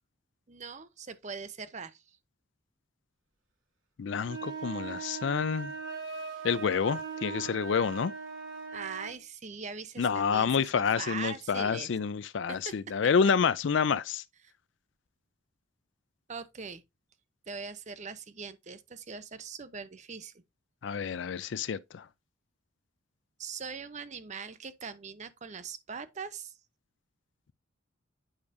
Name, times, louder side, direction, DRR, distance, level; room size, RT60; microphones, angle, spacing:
voice 1, 0.5-2.2 8.7-11.9 12.5-12.9 13.2-13.3 16.3-16.8 17.5-20.4 23.4-26.6, right 5 dB, 35° right, 0.6 m, -41 dB
voice 2, 4.0-5.7 6.4-8.1 10.0-14.2 20.8-22.0, left 6 dB, 65° left, 0.4 m, -28 dB
sound 1, 4.2-9.2, right 5 dB, 85° right, 1.6 m, -39 dB
8.8 x 4.8 x 2.6 m
head